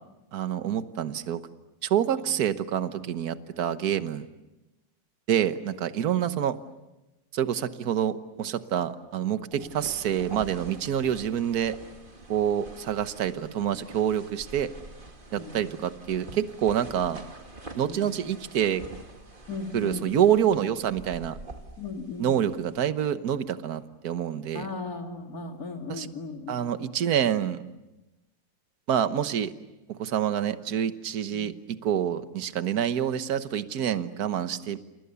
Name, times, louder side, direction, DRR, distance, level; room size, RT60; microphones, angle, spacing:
voice 1, 0.3-1.4 1.8-4.3 5.3-6.6 7.3-11.7 12.3-14.7 15.3-17.2 17.8-18.8 19.7-21.4 22.2-24.7 26.0-26.1 26.5-27.6 28.9-29.5 29.9-34.8, right 9 dB, 60° right, 11 dB, 1.6 m, -27 dB
sound 1, 9.5-22.9, right 2 dB, 30° right, 2.4 m, -46 dB
voice 2, 19.5-20.0 21.8-22.4 24.5-26.6 31.3-31.6, left 3 dB, 50° left, 3 dB, 3.2 m, -37 dB
29.5 x 29.0 x 7.0 m, 1.0 s
omnidirectional pair, 2.0 m